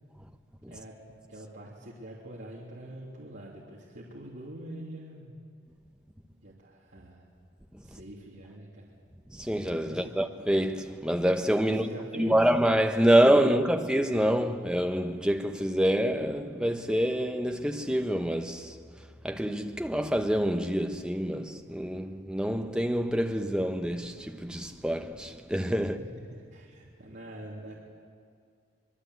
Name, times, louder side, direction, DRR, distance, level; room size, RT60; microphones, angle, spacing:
voice 1, 1.3-5.3 6.4-7.2 7.8-8.9 9.8-10.1 11.6-12.4 25.8-25.9 26.3-27.7, right 1 dB, 65° right, 3.1 m, -44 dB
voice 2, 9.3-18.7 19.2-26.0, equal, 5° right, 1.0 m, -26 dB
25.5 x 22.0 x 8.1 m
head